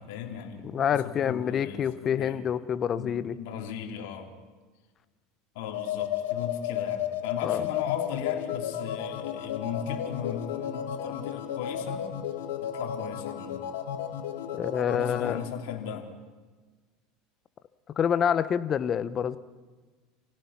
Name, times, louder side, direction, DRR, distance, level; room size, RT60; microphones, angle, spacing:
voice 1, 0.0-2.4 3.0-4.3 5.5-12.1 12.7-13.6 14.9-16.1, left 8 dB, 70° left, 1 dB, 3.4 m, -37 dB
voice 2, 0.7-3.4 7.4-7.6 14.6-15.4 18.0-19.4, left 8 dB, 35° left, 14 dB, 1.0 m, -27 dB
sound 1, 5.6-15.4, left 10 dB, 90° left, 1.8 m, -33 dB
28.5 x 16.5 x 5.9 m, 1.3 s
supercardioid pair, 115°, 0 cm